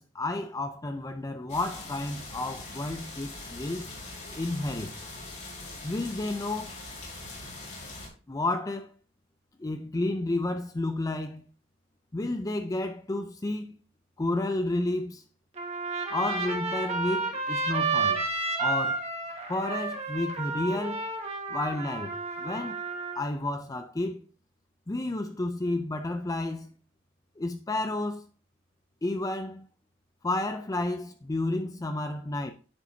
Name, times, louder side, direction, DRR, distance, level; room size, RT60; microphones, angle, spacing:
voice 1, 0.0-3.9 4.3-4.9 5.8-6.8 8.3-8.9 9.6-11.4 12.1-13.8 14.2-15.2 16.1-18.2 18.6-19.0 19.5-21.0 21.5-22.8 23.1-24.3 24.9-26.7 27.4-28.2 29.0-29.6 30.2-32.5, left 2 dB, 20° left, 0.5 m, -31 dB
sound 1, 1.5-8.1, left 2 dB, 40° left, 3.8 m, -42 dB
Trumpet, 15.6-23.2, right 3 dB, 35° right, 1.6 m, -31 dB
9.8 x 7.3 x 2.8 m
head